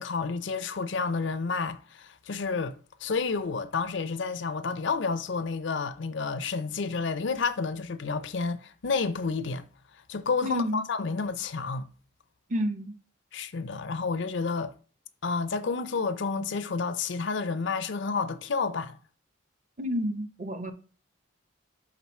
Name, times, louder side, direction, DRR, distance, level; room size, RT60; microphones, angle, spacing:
voice 1, 0.0-9.6 10.1-11.9 13.3-14.7 15.2-19.0, left 4 dB, 60° left, 0.5 m, -30 dB
voice 2, 10.4-10.9 12.5-12.9 19.8-20.7, equal, 35° right, 0.7 m, -30 dB
6.0 x 3.8 x 4.2 m
head